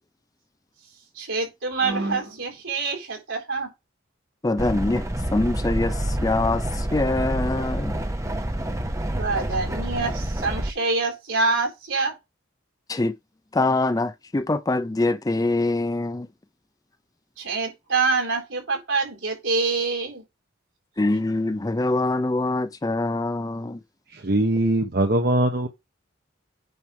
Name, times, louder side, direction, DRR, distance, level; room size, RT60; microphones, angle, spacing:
voice 1, 1.2-3.7 9.1-12.1 17.4-20.2, right 3 dB, 70° right, 4.1 m, -26 dB
voice 2, 4.4-8.0 12.9-13.1 13.5-16.3 21.0-23.8, left 2 dB, 15° left, 0.4 m, -24 dB
sound 1, 4.6-10.7, right 1 dB, 15° right, 0.9 m, -28 dB
voice 3, 24.1-25.7, right 1 dB, 50° right, 1.0 m, -21 dB
9.3 x 3.3 x 5.8 m
head